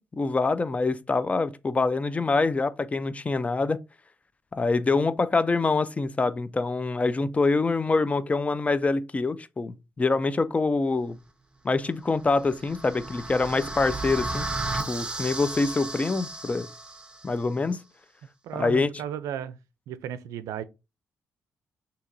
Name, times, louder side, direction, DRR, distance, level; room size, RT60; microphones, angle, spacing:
voice 1, 0.1-3.8 4.5-11.2 11.6-14.5 14.9-16.7 17.2-17.8 18.5-18.9, left 3 dB, 25° left, 0.4 m, -25 dB
sound 1, 12.2-17.3, right 2 dB, 20° right, 0.9 m, -34 dB
voice 2, 18.4-19.6 19.9-20.6, right 10 dB, 85° right, 0.4 m, -34 dB
6.4 x 2.8 x 2.6 m
cardioid pair, 80°, 5 cm